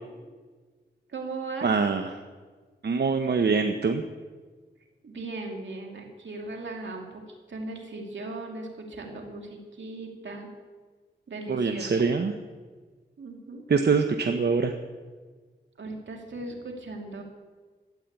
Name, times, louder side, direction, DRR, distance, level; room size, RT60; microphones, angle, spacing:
voice 1, 1.1-1.7 5.0-7.2 7.5-10.5 11.3-12.0 13.2-13.6 15.8-17.2, right 3 dB, 80° right, 1 dB, 2.7 m, -38 dB
voice 2, 1.6-2.2 2.8-4.0 11.5-12.3 13.7-14.7, right 5 dB, 65° right, 6 dB, 0.9 m, -24 dB
13.0 x 9.3 x 8.2 m, 1.4 s
cardioid pair, 55°, 19 cm